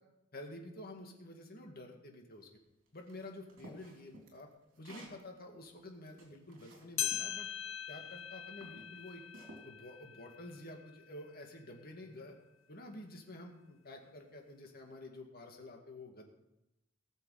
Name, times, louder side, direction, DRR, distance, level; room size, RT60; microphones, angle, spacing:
voice 1, 0.3-2.5 2.9-4.5 4.8-7.5 7.9-9.2 9.6-12.4 12.7-16.3, left 1 dB, 50° left, 2 dB, 2.1 m, -50 dB
sound 1, 3.1-5.2 5.8-7.3 8.0-8.2 8.6-9.6, right 1 dB, 75° right, 3.2 m, -54 dB
sound 2, 7.0-11.6 12.1-12.2 13.0-13.1 14.1-14.2, left 10 dB, 70° left, 1.0 m, -41 dB
19.0 x 7.0 x 5.0 m, 0.94 s
head